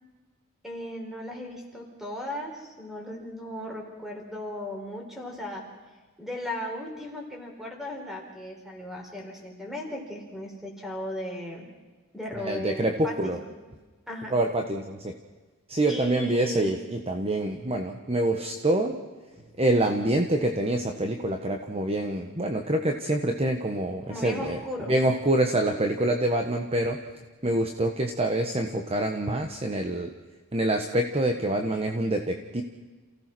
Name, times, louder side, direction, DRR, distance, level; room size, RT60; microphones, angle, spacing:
voice 1, 0.6-5.6 6.2-11.7 12.1-13.3 14.1-14.3 15.9-16.8 19.4-19.5 24.1-24.9, left 1 dB, ahead, 0 dB, 4.5 m, -36 dB
voice 2, 12.4-13.4 14.3-15.1 15.7-18.9 19.6-24.6 24.9-27.0 27.4-30.1 30.5-32.6, right 1 dB, 30° right, 4 dB, 1.2 m, -26 dB
28.5 x 17.0 x 6.2 m, 1.3 s
head